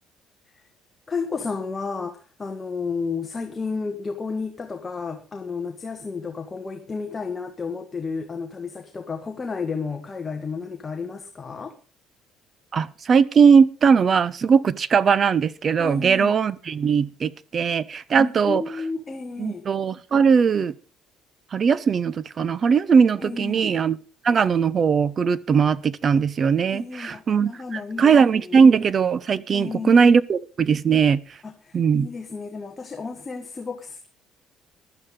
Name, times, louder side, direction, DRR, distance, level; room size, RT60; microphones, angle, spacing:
voice 1, 1.1-11.8 15.8-16.4 18.2-19.7 23.2-23.7 26.7-28.6 29.5-30.0 31.4-34.1, left 4 dB, 20° left, 1.4 m, -32 dB
voice 2, 12.7-18.6 19.4-20.7 21.5-24.0 24.2-31.2 31.7-32.1, right 6 dB, 35° right, 0.7 m, -19 dB
15.5 x 12.0 x 3.8 m
cardioid pair, 135°, 0 cm